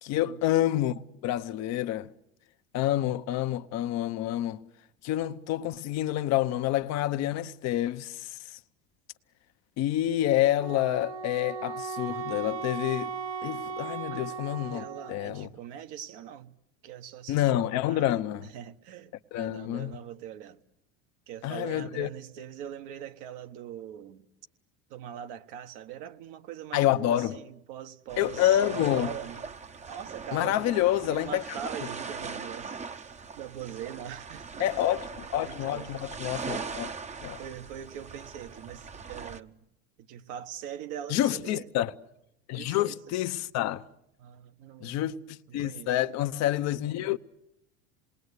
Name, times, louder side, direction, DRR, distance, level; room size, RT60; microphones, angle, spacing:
voice 1, 0.0-2.1 2.7-4.6 5.0-8.6 9.8-13.1 13.4-15.5 17.3-18.5 19.3-19.9 21.4-22.1 26.7-27.3 28.2-29.1 30.3-31.4 34.6-36.9 37.2-37.4 41.1-41.9 42.5-43.8 44.8-47.2, left 13 dB, 50° left, 0.9 m, -28 dB
Wind instrument woodwind instrument, 10.6-15.4, right 5 dB, 85° right, 1.6 m, -37 dB
voice 2, 14.7-16.5 16.8-17.6 17.9-18.1 18.4-20.6 21.3-24.2 24.9-29.4 29.9-34.7 35.3-36.1 36.4-36.8 37.4-39.6 40.1-41.7 42.5-43.0 44.2-45.1 45.5-46.0, right 9 dB, 65° right, 1.3 m, -42 dB
sound 1, 28.1-39.4, right 5 dB, 20° right, 0.8 m, -40 dB
27.5 x 20.5 x 8.2 m
supercardioid pair, 95°, 33 cm